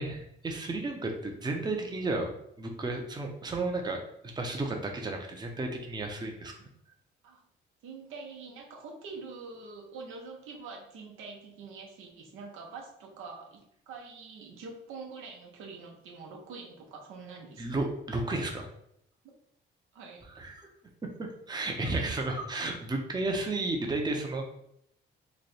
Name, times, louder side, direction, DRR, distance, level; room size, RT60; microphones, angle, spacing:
voice 1, 0.0-6.7 17.6-18.7 20.4-20.6 21.2-24.5, right 2 dB, 20° right, 2 dB, 0.6 m, -33 dB
voice 2, 7.8-17.6 19.9-20.3 21.6-22.2, right 4 dB, 85° right, 0 dB, 0.9 m, -45 dB
3.2 x 2.2 x 4.0 m, 0.74 s
cardioid pair, 90°, 20 cm